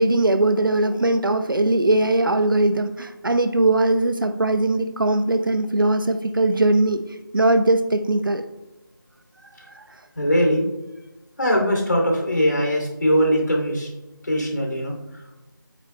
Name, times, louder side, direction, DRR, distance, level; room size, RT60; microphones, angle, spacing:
voice 1, 0.0-7.0 7.3-8.5, right 2 dB, 70° right, 9 dB, 0.8 m, -20 dB
voice 2, 10.2-10.6 11.4-13.9 14.2-15.2, equal, 55° left, 0 dB, 2.7 m, -21 dB
9.8 x 8.7 x 2.2 m, 1.0 s
figure-of-eight pair, 180°, 12 cm